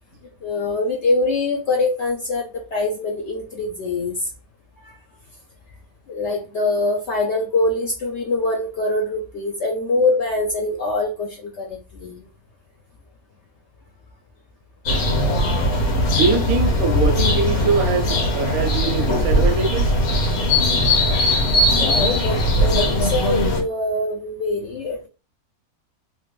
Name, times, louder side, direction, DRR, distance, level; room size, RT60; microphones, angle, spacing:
voice 1, 0.4-4.3 4.8-5.0 6.1-12.2 21.7-25.1, left 2 dB, 60° left, 0.8 m, -24 dB
sound 1, 14.9-23.6, left 1 dB, 85° left, 1.4 m, -19 dB
voice 2, 16.1-19.9, right 4 dB, 75° right, 1.1 m, -23 dB
3.1 x 2.5 x 3.0 m
omnidirectional pair, 1.5 m